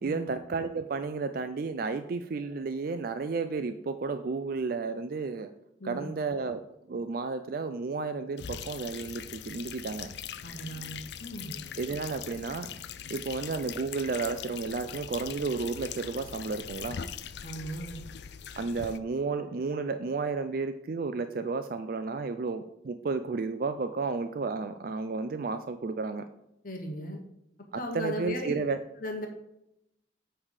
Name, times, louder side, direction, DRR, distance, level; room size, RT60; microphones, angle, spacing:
voice 1, 0.0-5.5 5.8-6.6 6.9-10.1 11.8-12.7 13.1-17.0 18.6-26.3 27.7-28.8, right 4 dB, 50° right, 9 dB, 0.4 m, -32 dB
voice 2, 5.8-6.2 10.4-11.6 17.4-18.0 26.6-27.2 27.7-28.5 29.0-29.3, equal, 45° left, 2 dB, 1.1 m, -37 dB
sound 1, 8.4-19.0, left 8 dB, 60° left, 0.4 m, -41 dB
8.8 x 3.4 x 6.5 m, 0.81 s
head